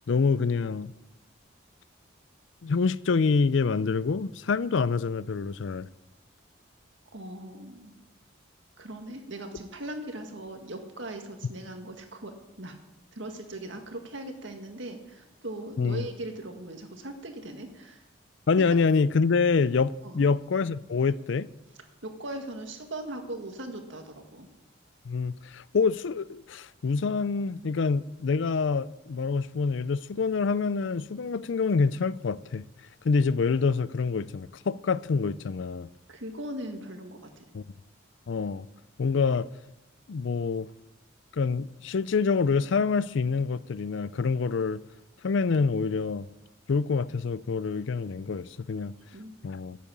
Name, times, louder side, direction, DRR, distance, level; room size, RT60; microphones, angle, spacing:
voice 1, 0.1-0.9 2.6-5.9 15.8-16.1 18.5-21.5 25.0-32.6 33.0-35.9 37.5-37.6 38.3-38.7 39.0-39.5 40.1-40.7 41.3-44.8 45.2-46.3 46.7-48.9 49.4-49.8, left 4 dB, 70° left, 0.4 m, -26 dB
voice 2, 7.1-7.9 8.8-12.8 13.1-18.0 18.6-18.7 20.0-20.3 22.0-24.5 36.1-37.4 49.1-49.3, right 1 dB, 70° right, 1.9 m, -39 dB
11.5 x 8.4 x 8.6 m
head